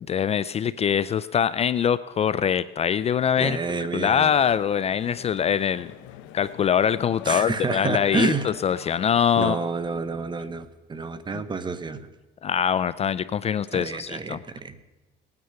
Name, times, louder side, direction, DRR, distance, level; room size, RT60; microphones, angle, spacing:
voice 1, 0.1-3.6 3.9-5.9 6.3-9.6 11.3-11.4 12.4-14.4, left 8 dB, 35° left, 16 dB, 0.4 m, -23 dB
voice 2, 3.4-4.3 7.2-8.5 9.4-12.1 13.7-14.8, right 4 dB, 25° right, 13 dB, 0.9 m, -29 dB
sound 1, 4.3-9.3, left 13 dB, 90° left, 0.8 m, -44 dB
18.5 x 9.5 x 5.7 m, 1.2 s
cardioid pair, 120°, 19 cm